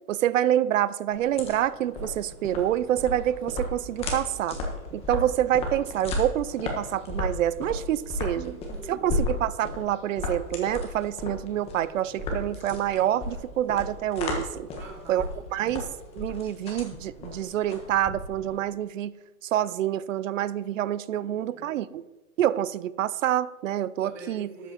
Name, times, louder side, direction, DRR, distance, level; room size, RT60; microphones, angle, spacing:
voice 1, 0.1-4.6 4.9-8.5 8.9-14.7 15.1-15.2 15.5-15.9 16.1-19.1 19.4-22.0 22.4-24.5, right 11 dB, 60° right, 18 dB, 0.6 m, -27 dB
sound 1, 1.1-18.6, left 2 dB, 15° left, 1.3 m, -34 dB
voice 2, 8.3-9.1 14.7-15.6 21.1-22.0 24.0-24.7, right 4 dB, 5° right, -1 dB, 0.5 m, -45 dB
12.5 x 8.5 x 4.2 m, 1.1 s
hypercardioid pair, 165°, 44 cm